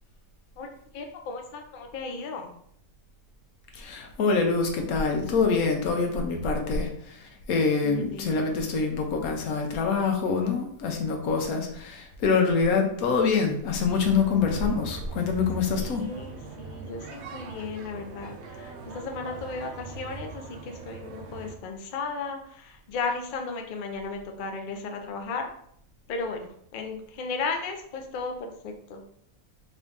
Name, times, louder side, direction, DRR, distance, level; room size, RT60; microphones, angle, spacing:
voice 1, 0.9-2.5 7.8-8.6 15.7-25.4 26.1-29.0, left 4 dB, 60° left, 4 dB, 0.5 m, -35 dB
voice 2, 3.7-16.0, left 4 dB, 85° left, 3 dB, 1.2 m, -25 dB
Kenya in the slums of Nairobi neighborhoods, 13.9-21.6, right 4 dB, 65° right, 0.7 m, -41 dB
3.9 x 2.7 x 3.5 m, 0.67 s
omnidirectional pair, 1.5 m